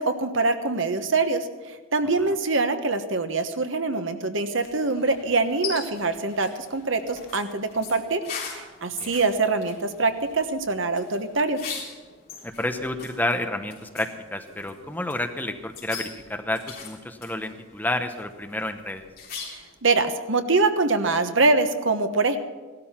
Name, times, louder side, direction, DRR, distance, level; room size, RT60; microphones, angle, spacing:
voice 1, 0.0-8.2 8.5-11.6 19.4-22.4, right 3 dB, 70° right, 8 dB, 1.2 m, -24 dB
sound 1, 4.6-19.8, left 6 dB, 45° left, 3.8 m, -41 dB
voice 2, 12.4-19.0, left 1 dB, 10° left, 6 dB, 0.8 m, -30 dB
17.0 x 13.0 x 5.9 m, 1.3 s
head